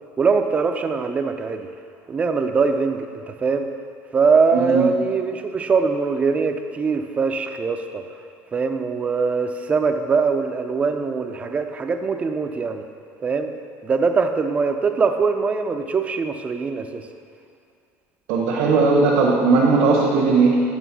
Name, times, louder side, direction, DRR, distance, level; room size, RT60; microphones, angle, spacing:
voice 1, 0.2-1.7 2.1-3.7 4.1-8.0 8.5-12.8 13.2-13.5 13.8-17.0, right 5 dB, 20° right, 6 dB, 0.4 m, -22 dB
voice 2, 4.5-4.9 18.3-20.6, right 4 dB, 80° right, -5 dB, 1.2 m, -17 dB
9.0 x 3.7 x 6.1 m, 2.3 s
cardioid pair, 145°, 6 cm